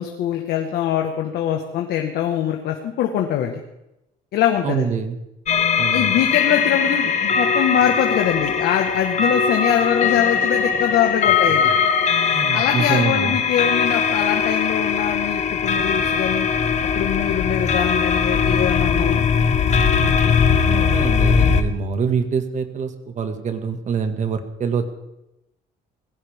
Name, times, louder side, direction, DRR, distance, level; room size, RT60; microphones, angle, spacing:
voice 1, 0.0-3.6 4.3-4.9 5.9-11.7 12.2-16.5 16.9-19.2, left 9 dB, 75° left, 2 dB, 1.6 m, -23 dB
voice 2, 4.6-5.2 5.8-6.2 12.3-13.4 20.7-24.9, right 6 dB, 45° right, 7 dB, 2.0 m, -25 dB
sound 1, 5.5-21.6, left 6 dB, 45° left, 1.4 m, -20 dB
20.5 x 16.0 x 3.7 m, 0.90 s
cardioid pair, 110°, 17 cm